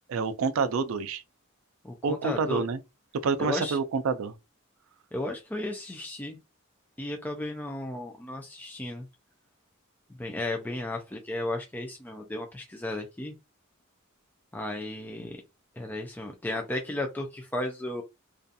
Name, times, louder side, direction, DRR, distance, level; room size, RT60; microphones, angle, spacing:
voice 1, 0.1-1.2 2.0-2.8 3.1-4.3, right 5 dB, 70° right, 0.4 m, -28 dB
voice 2, 1.8-2.6 3.4-3.8 5.1-6.4 7.0-9.1 10.2-13.3 14.5-15.4 15.8-18.0, left 1 dB, 10° left, 0.3 m, -34 dB
2.4 x 2.3 x 2.6 m
head